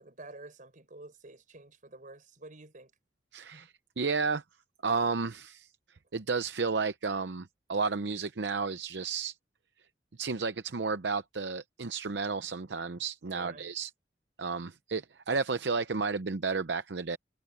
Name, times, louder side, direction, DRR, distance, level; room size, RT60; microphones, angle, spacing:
voice 1, 0.0-2.9 3.5-3.7 13.3-13.7, right 2 dB, 45° right, 5.3 m, -49 dB
voice 2, 3.3-4.4 4.8-5.7 6.1-9.3 10.2-13.9 14.4-17.2, right 4 dB, 70° right, 0.7 m, -32 dB
head